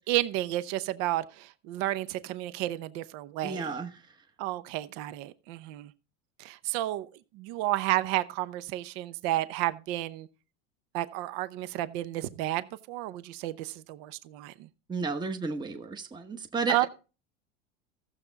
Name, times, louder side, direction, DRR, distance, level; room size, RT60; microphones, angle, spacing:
voice 1, 0.0-3.7 4.4-5.9 6.4-7.1 7.3-10.3 10.9-14.7 16.7-16.9, right 16 dB, 65° right, 0.9 m, -31 dB
voice 2, 3.4-4.1 14.9-16.9, right 4 dB, 15° right, 1.0 m, -33 dB
14.5 x 7.3 x 4.0 m
supercardioid pair, 135°, 32 cm